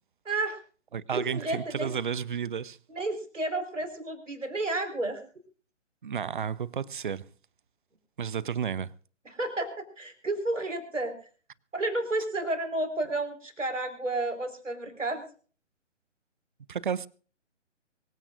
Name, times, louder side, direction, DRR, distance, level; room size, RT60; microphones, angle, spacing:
voice 1, 0.2-0.6 1.1-1.9 2.9-5.2 9.2-11.2 11.7-15.2, right 2 dB, 75° right, 4.5 m, -31 dB
voice 2, 0.9-2.8 6.0-7.3 8.2-8.9 16.7-17.1, right 7 dB, 40° right, 0.7 m, -32 dB
24.0 x 16.0 x 2.5 m
figure-of-eight pair, 140°, 37 cm